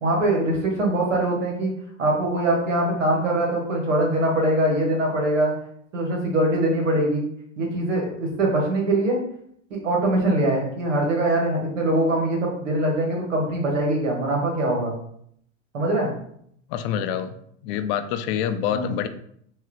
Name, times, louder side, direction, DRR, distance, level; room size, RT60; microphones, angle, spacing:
voice 1, 0.0-5.5 5.9-7.2 7.6-9.2 9.7-14.9 15.7-16.1 18.7-18.9, right 1 dB, 85° right, 0 dB, 1.6 m, -23 dB
voice 2, 16.7-17.4 17.6-19.1, left 9 dB, 50° left, 10 dB, 0.5 m, -26 dB
4.8 x 2.8 x 3.0 m, 0.68 s
hypercardioid pair, 100°, 37 cm